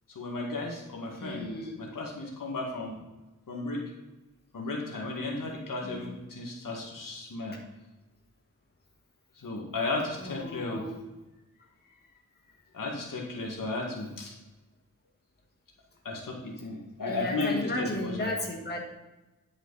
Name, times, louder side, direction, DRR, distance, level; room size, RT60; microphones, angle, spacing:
voice 1, 0.1-1.5 1.9-3.0 3.5-3.8 4.5-7.6 9.4-10.8 12.7-14.3 16.0-18.3, left 2 dB, 85° left, -1 dB, 2.0 m, -34 dB
voice 2, 1.2-1.8 5.8-6.2 7.5-7.6 10.2-11.0 17.1-18.8, left 1 dB, 30° left, 0 dB, 1.7 m, -35 dB
10.5 x 6.3 x 4.1 m, 1.1 s
wide cardioid pair, 95°, 32 cm